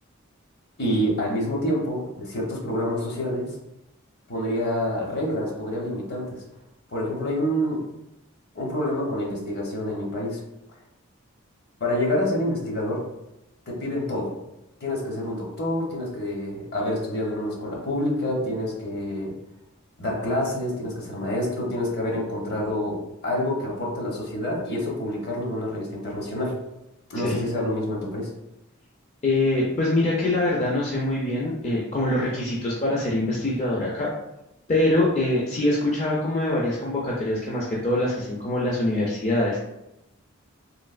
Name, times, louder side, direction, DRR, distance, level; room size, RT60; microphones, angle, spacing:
voice 1, 0.8-3.5 4.3-6.4 6.9-7.8 8.5-10.4 11.8-13.0 13.7-14.3 14.8-19.3 20.0-26.5 27.1-28.3, left 1 dB, 50° left, -2 dB, 0.8 m, -27 dB
voice 2, 29.2-34.1 34.7-39.6, left 1 dB, 30° left, -5 dB, 0.4 m, -24 dB
3.1 x 2.7 x 2.4 m, 0.89 s
head